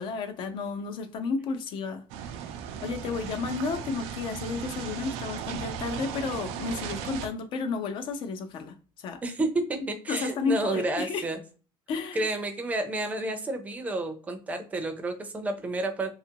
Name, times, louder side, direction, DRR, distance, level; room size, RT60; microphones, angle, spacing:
voice 1, 0.0-2.0 2.8-8.7 9.0-9.2 10.1-11.2 11.9-12.3, left 4 dB, 55° left, 0.5 m, -32 dB
sound 1, 2.1-7.3, right 8 dB, 85° right, 0.4 m, -36 dB
voice 2, 9.2-11.4 12.1-16.1, right 2 dB, 15° right, 0.5 m, -30 dB
2.8 x 2.4 x 2.7 m
cardioid pair, 160°, 10 cm